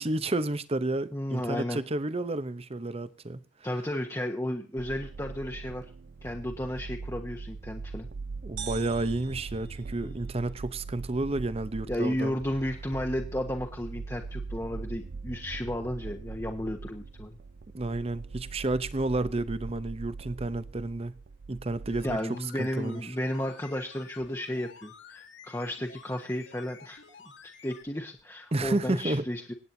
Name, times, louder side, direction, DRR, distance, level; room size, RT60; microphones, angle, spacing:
voice 1, 0.0-3.4 8.4-12.3 17.7-21.1 21.5-22.2 22.6-23.1 28.5-29.3, right 2 dB, 35° right, 0.8 m, -31 dB
voice 2, 1.1-1.8 3.6-5.9 6.2-8.1 10.0-10.1 11.9-17.4 22.0-27.0 27.6-29.5, left 1 dB, 15° left, 1.1 m, -33 dB
sound 1, 4.8-22.2, right 4 dB, 65° right, 0.5 m, -41 dB
sound 2, 8.6-10.5, right 9 dB, 90° right, 1.7 m, -44 dB
sound 3, 21.8-27.9 28.2-28.3, left 5 dB, 80° left, 2.0 m, -51 dB
26.5 x 8.9 x 2.7 m
head